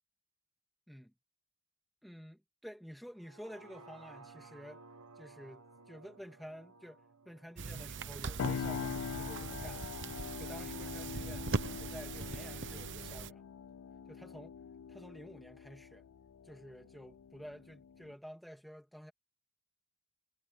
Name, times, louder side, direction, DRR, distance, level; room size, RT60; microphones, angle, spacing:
voice 1, 2.0-4.8 5.2-10.0 10.4-11.5 11.8-13.5 14.1-14.6 14.9-16.1 16.4-19.1, equal, ahead, 1.9 m, -51 dB
sound 1, 3.1-9.3 9.7-9.8, right 3 dB, 85° right, 1.3 m, -57 dB
sound 2, 7.6-13.3, right 4 dB, 55° right, 1.0 m, -40 dB
sound 3, 8.4-18.1, left 6 dB, 65° left, 0.4 m, -43 dB
head